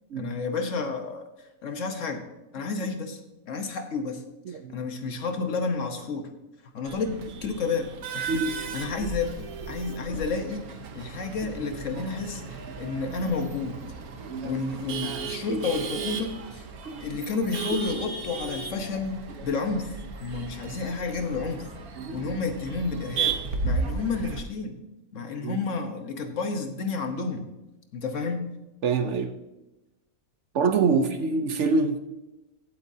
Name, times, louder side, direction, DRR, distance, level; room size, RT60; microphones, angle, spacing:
voice 1, 0.1-1.2 1.6-2.2 2.5-3.2 3.5-4.2 4.5-6.3 6.7-10.7 10.9-13.8 14.4-16.6 17.0-19.9 20.2-21.7 22.1-23.4 23.6-24.8 25.1-27.5 27.9-28.5 30.9-31.1, left 4 dB, 60° left, 5 dB, 1.4 m, -31 dB
voice 2, 4.5-4.8 8.3-8.5 12.8-12.9 13.2-13.3 14.3-14.6 15.3-15.6 16.9-17.0 22.0-22.3 25.4-25.6 28.8-29.3 30.5-32.0, right 4 dB, 60° right, 8 dB, 0.9 m, -26 dB
Male speech man speaking / Laughter / Chatter, 6.8-24.4, right 5 dB, 85° right, 1.5 m, -35 dB
16.0 x 8.2 x 2.7 m, 0.99 s
omnidirectional pair, 1.5 m